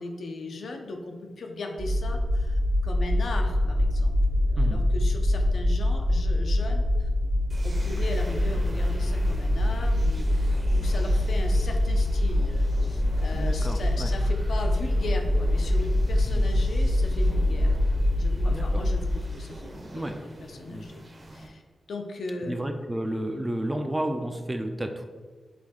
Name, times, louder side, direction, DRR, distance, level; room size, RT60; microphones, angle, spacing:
voice 1, 0.0-7.1 7.6-17.8 18.1-21.0 21.3-21.6 21.9-22.6, left 2 dB, 75° left, 3 dB, 0.5 m, -38 dB
sound 1, 1.8-19.1, left 1 dB, 65° right, 0.6 m, -24 dB
sound 2, 7.5-21.5, right 1 dB, 30° right, 0.8 m, -44 dB
voice 2, 13.3-14.1 16.2-16.5 18.5-18.8 19.9-20.2 20.7-20.9 22.5-25.1, right 1 dB, 15° right, 5 dB, 0.3 m, -31 dB
5.0 x 2.7 x 3.6 m, 1.4 s
wide cardioid pair, 125°, 0 cm